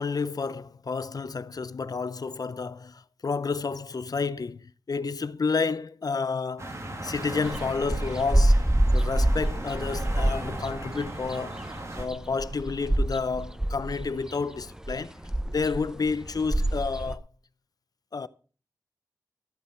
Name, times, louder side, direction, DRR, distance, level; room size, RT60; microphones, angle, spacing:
voice 1, 0.0-6.8 7.0-8.7 8.9-11.6 12.0-15.2 15.5-17.2 18.1-18.3, left 4 dB, 60° left, 0.6 m, -30 dB
sound 1, 6.6-12.1, right 1 dB, 40° right, 2.3 m, -37 dB
sound 2, 7.5-17.2, right 1 dB, 10° right, 0.7 m, -26 dB
13.5 x 8.6 x 4.4 m
wide cardioid pair, 75°, 7 cm